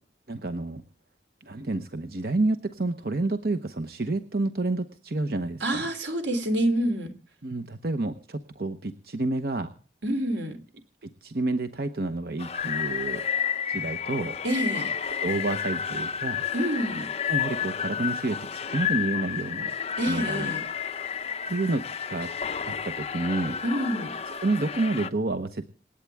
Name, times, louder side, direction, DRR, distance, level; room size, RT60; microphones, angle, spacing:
voice 1, 0.3-0.8 1.4-5.9 7.4-9.7 11.0-13.2 13.7-14.4 15.2-16.4 17.3-19.7 20.1-20.5 21.5-22.3 22.7-23.6 24.4-25.6, right 2 dB, 55° right, 8 dB, 0.9 m, -29 dB
voice 2, 5.6-7.1 10.0-10.6 14.4-14.9 16.5-17.1 20.0-20.6 23.6-24.1, right 1 dB, 90° right, 7 dB, 3.1 m, -27 dB
sound 1, 12.4-25.1, left 8 dB, 35° left, 0.7 m, -31 dB
27.0 x 9.0 x 3.5 m, 0.41 s
head